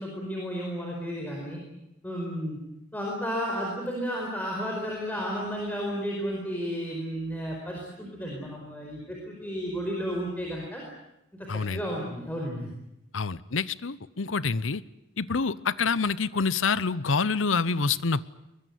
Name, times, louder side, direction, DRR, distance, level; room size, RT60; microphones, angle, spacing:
voice 1, 0.0-1.6 2.0-2.6 2.9-10.8 11.3-12.7, equal, 10° left, -2 dB, 4.9 m, -33 dB
voice 2, 11.5-11.8 13.1-14.8 15.2-18.2, left 4 dB, 80° left, 18 dB, 0.8 m, -27 dB
23.5 x 21.5 x 9.4 m, 0.88 s
head